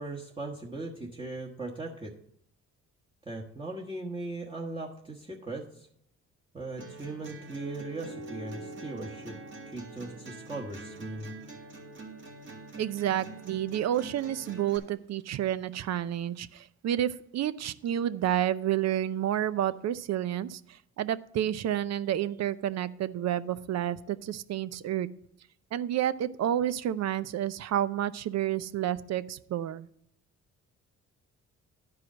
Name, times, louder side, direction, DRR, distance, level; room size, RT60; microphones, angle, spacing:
voice 1, 0.0-2.1 3.2-5.9 6.5-9.3 9.7-11.3, right 2 dB, 15° right, -3 dB, 1.3 m, -38 dB
sound 1, 6.8-14.8, right 3 dB, 40° right, 1.9 m, -46 dB
sound 2, 7.8-12.6, right 1 dB, 75° right, 1.6 m, -48 dB
voice 2, 12.8-25.1 25.7-29.9, right 11 dB, 60° right, 16 dB, 0.6 m, -30 dB
10.5 x 4.8 x 6.2 m, 0.70 s
cardioid pair, 90°, 30 cm